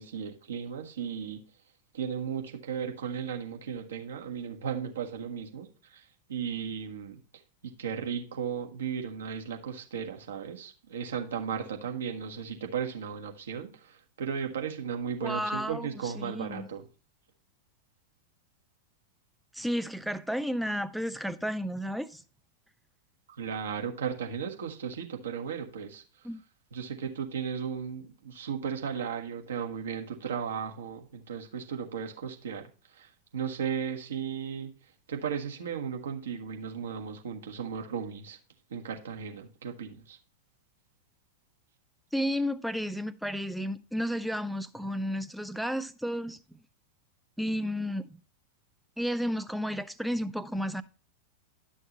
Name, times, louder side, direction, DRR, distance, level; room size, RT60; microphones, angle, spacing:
voice 1, 0.0-1.4 1.9-7.2 7.6-16.9 23.4-26.3 26.7-34.7 35.1-38.4 38.7-40.2, right 7 dB, 65° right, 1.5 m, -35 dB
voice 2, 15.2-16.7 19.5-22.2 26.2-26.4 42.1-46.4 47.4-48.0 49.0-50.8, equal, ahead, 0.6 m, -32 dB
11.5 x 6.4 x 3.0 m
figure-of-eight pair, 90°, 0 cm